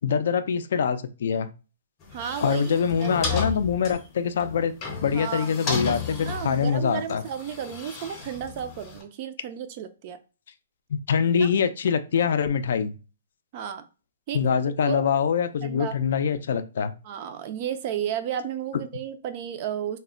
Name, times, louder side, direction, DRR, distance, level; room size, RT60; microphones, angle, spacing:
voice 1, 0.0-1.5 2.4-4.7 5.0-7.2 11.1-13.0 14.3-16.9, left 7 dB, 65° left, 11 dB, 0.3 m, -24 dB
sound 1, 2.0-9.0, left 5 dB, 25° left, 0.6 m, -34 dB
voice 2, 2.1-3.6 5.1-10.2 11.4-11.5 13.5-13.8 14.3-14.6 14.9-15.0 15.6-15.9 17.0-20.0, right 9 dB, 35° right, 9 dB, 0.3 m, -33 dB
2.1 x 2.0 x 3.7 m, 0.33 s
hypercardioid pair, 165°, 0 cm